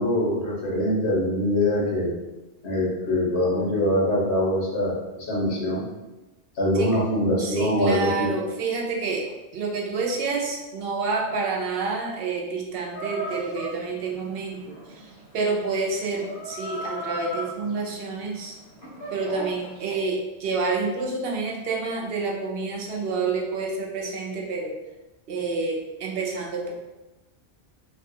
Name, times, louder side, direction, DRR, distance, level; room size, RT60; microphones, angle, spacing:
voice 1, 0.0-2.1 2.6-5.8 6.6-8.3, left 1 dB, 85° left, -5 dB, 1.3 m, -23 dB
voice 2, 7.4-18.6 19.1-24.8 25.3-26.7, right 4 dB, 70° right, -1 dB, 0.8 m, -28 dB
Chicken rooster, 12.9-19.9, right 1 dB, 65° left, 1.2 m, -37 dB
3.2 x 2.2 x 2.7 m, 1.1 s
omnidirectional pair, 1.1 m